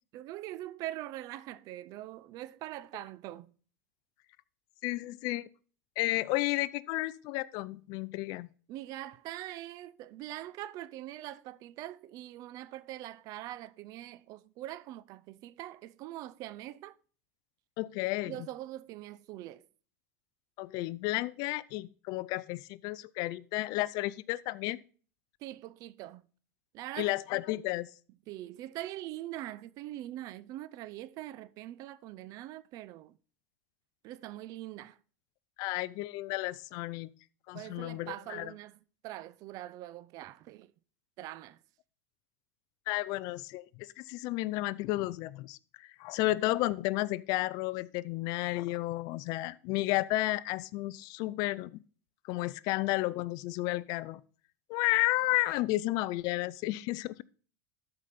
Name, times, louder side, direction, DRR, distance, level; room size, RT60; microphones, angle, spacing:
voice 1, 0.1-3.5 8.7-17.0 18.2-19.6 25.4-26.2 26.7-27.1 28.3-33.1 34.0-35.0 37.5-40.7 41.2-41.6, right 14 dB, 45° right, 0.5 m, -43 dB
voice 2, 4.8-5.5 6.0-8.5 17.8-18.5 20.6-24.8 27.0-27.9 35.6-37.1 37.5-38.5 42.9-51.8 52.2-54.2 54.7-57.2, left 18 dB, 50° left, 0.4 m, -32 dB
12.5 x 5.1 x 4.1 m
supercardioid pair, 125°, 8 cm